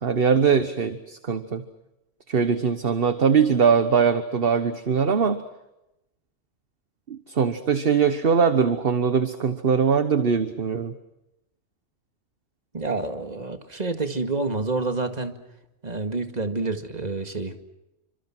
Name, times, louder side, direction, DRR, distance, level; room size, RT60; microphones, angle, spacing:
voice 1, 0.0-1.6 2.3-5.4 7.1-10.9, right 6 dB, 50° right, 10 dB, 1.4 m, -21 dB
voice 2, 12.7-15.3 15.8-17.5, right 3 dB, 35° right, 6 dB, 2.2 m, -28 dB
29.5 x 25.5 x 6.1 m, 0.92 s
omnidirectional pair, 1.3 m